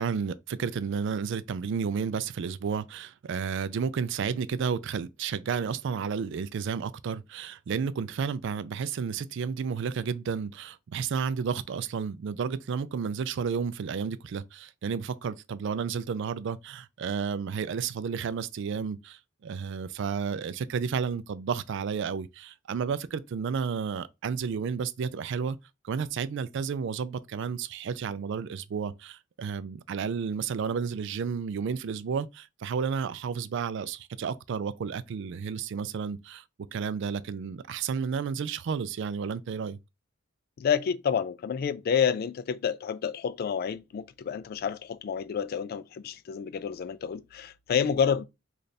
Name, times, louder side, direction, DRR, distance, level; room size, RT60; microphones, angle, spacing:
voice 1, 0.0-25.6 25.8-36.4 36.7-39.8, right 6 dB, 65° right, 0.4 m, -32 dB
voice 2, 40.6-48.3, left 7 dB, 50° left, 0.3 m, -29 dB
3.3 x 2.5 x 4.0 m
head